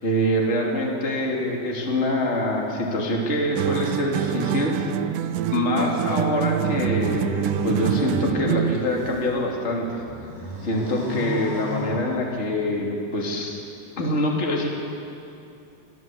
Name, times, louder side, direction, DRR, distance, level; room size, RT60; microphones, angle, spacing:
voice 1, 0.0-4.7 5.5-9.9 10.6-13.6 14.0-14.7, left 1 dB, 20° left, -1 dB, 2.8 m, -25 dB
sound 1, 3.6-8.9, right 12 dB, 85° right, 2.3 m, -26 dB
sound 2, 6.6-9.3 9.8-12.6, left 1 dB, 60° right, 6.9 m, -34 dB
26.0 x 15.5 x 7.8 m, 2.7 s
omnidirectional pair, 3.6 m